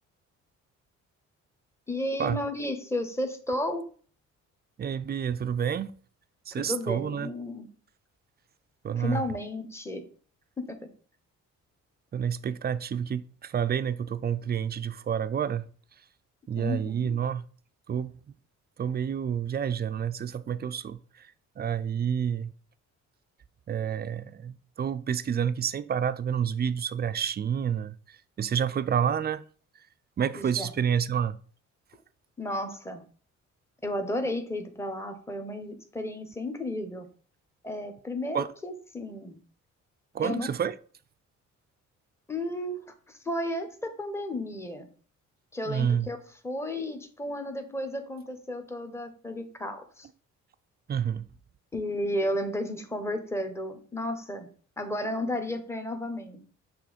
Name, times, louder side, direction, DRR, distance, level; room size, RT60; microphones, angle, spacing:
voice 1, 1.9-3.8 6.5-7.7 9.0-10.0 10.6-10.8 16.6-17.1 30.3-30.7 32.4-33.0 33.8-37.1 37.6-39.4 40.2-40.5 42.3-42.8 43.2-44.9 45.5-46.2 46.4-50.1 51.7-54.5 54.8-56.4, left 1 dB, 10° left, 1.1 m, -33 dB
voice 2, 4.8-5.9 6.5-7.3 8.8-9.2 12.1-15.7 16.5-17.4 17.9-18.1 18.8-21.0 21.6-22.5 23.7-28.0 28.4-29.4 30.2-31.4 38.3-38.5 40.1-40.7 45.7-46.1 50.9-51.3, right 8 dB, 35° right, 0.5 m, -29 dB
6.0 x 3.4 x 5.0 m
cardioid pair, 90°, 30 cm